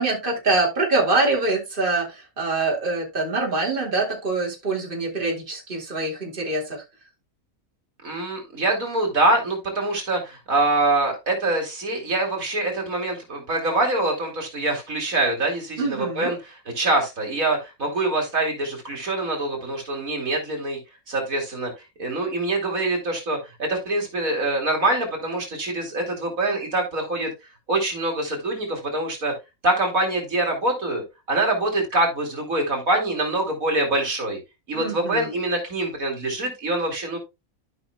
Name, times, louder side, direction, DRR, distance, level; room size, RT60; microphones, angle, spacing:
voice 1, 0.0-6.8 15.8-16.3 34.7-35.3, right 3 dB, 35° right, -1 dB, 2.9 m, -24 dB
voice 2, 8.0-16.4 16.8-20.8 21.1-21.7 22.0-27.3 27.7-29.3 29.6-34.4 34.7-37.2, right 2 dB, 75° right, 1 dB, 3.4 m, -24 dB
14.0 x 5.7 x 2.3 m, 0.24 s
omnidirectional pair, 1.5 m